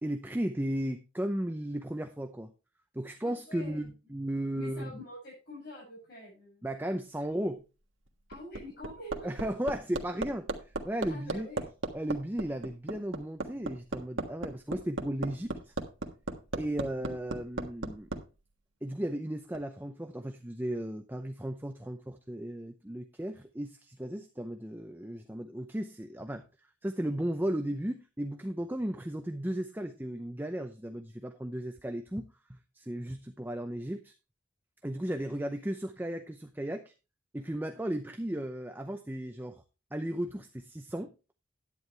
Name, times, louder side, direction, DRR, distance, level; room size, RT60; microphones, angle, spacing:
voice 1, 0.0-2.5 2.9-4.9 6.6-7.6 9.2-10.5 10.8-11.5 11.9-15.7 16.6-18.1 18.8-26.4 26.8-34.1 34.8-36.9 37.3-39.6 39.9-41.1, right 1 dB, 10° right, 6 dB, 0.6 m, -35 dB
voice 2, 3.5-3.8 4.6-6.7 8.3-9.3 11.1-11.7 16.9-17.1, left 1 dB, 55° left, -6 dB, 7.3 m, -46 dB
Hammer, 8.1-18.2 19.5-19.6, right 2 dB, 85° right, 1.5 m, -35 dB
11.0 x 9.3 x 3.3 m, 0.30 s
head